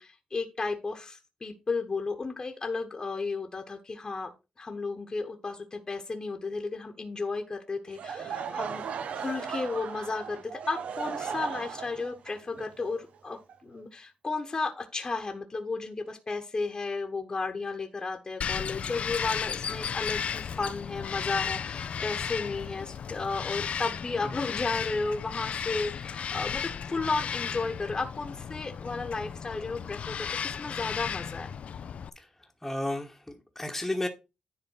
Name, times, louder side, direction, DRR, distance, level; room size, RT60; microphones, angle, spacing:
voice 1, 0.0-4.3 4.6-8.9 9.1-31.5, left 3 dB, 35° left, 1.3 m, -33 dB
Laughter / Crowd, 7.9-13.8, right 7 dB, 75° right, 0.9 m, -37 dB
Bird vocalization bird call bird song, 18.4-32.1, left 7 dB, 65° left, 0.6 m, -34 dB
voice 2, 32.1-34.1, left 1 dB, 5° left, 1.3 m, -33 dB
10.5 x 3.7 x 5.6 m
cardioid pair, 85°, 2 cm